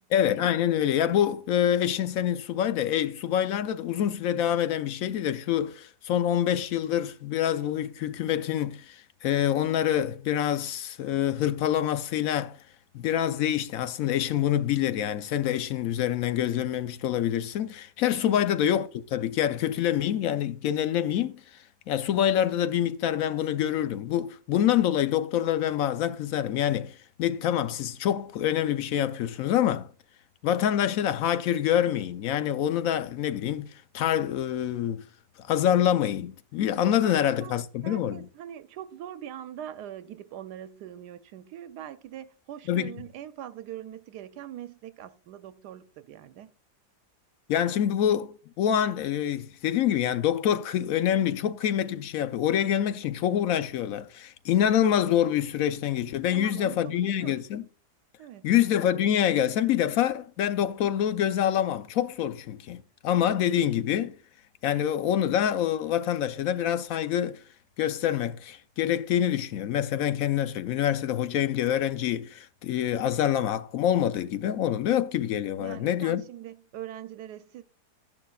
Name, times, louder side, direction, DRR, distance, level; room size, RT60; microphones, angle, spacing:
voice 1, 0.1-12.6 12.9-21.4 21.9-29.9 30.4-33.7 33.9-35.0 35.4-38.3 42.7-43.0 47.5-57.6 58.4-64.2 64.6-67.4 67.8-76.2, left 10 dB, 65° left, 0.9 m, -26 dB
voice 2, 37.0-37.5 37.8-46.5 56.3-57.4 58.2-58.5 75.6-77.6, right 11 dB, 80° right, 1.2 m, -42 dB
13.0 x 11.0 x 2.3 m
omnidirectional pair, 1.8 m